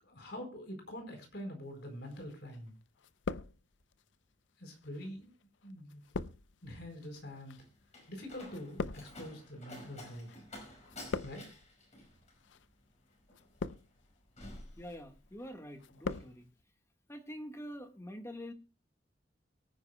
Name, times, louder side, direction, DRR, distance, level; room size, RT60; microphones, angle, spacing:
voice 1, 0.0-2.7 4.6-5.3 5.6-6.0 6.6-7.6 8.1-10.4 11.2-11.4, equal, 65° left, 4 dB, 4.4 m, -45 dB
sound 1, 2.1-2.7 3.0-4.0 4.7-10.4 10.6-11.7 12.4-12.7 13.3-14.1 14.6-15.0 15.4-16.3 16.6-16.7, left 4 dB, 90° left, 0.6 m, -42 dB
Slam, 7.1-15.5 15.8-16.3, left 1 dB, 40° left, 4.9 m, -52 dB
voice 2, 14.8-16.5 17.1-18.5, equal, 15° left, 5 dB, 1.6 m, -45 dB
23.0 x 9.5 x 2.2 m, 0.29 s
head